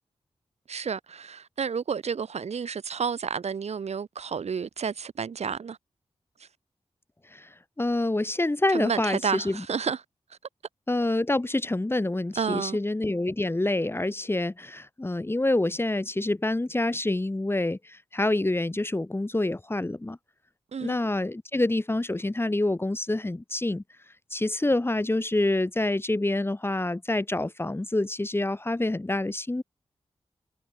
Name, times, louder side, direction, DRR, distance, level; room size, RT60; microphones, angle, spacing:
voice 1, 0.7-5.8 6.4-6.5 8.7-10.0 12.4-12.8 20.7-21.0, right 6 dB, 80° right, 2.8 m, -31 dB
voice 2, 7.8-9.6 10.9-20.2 20.8-23.8 24.3-29.6, left 2 dB, 20° left, 1.5 m, -27 dB
cardioid pair, 55°, 11 cm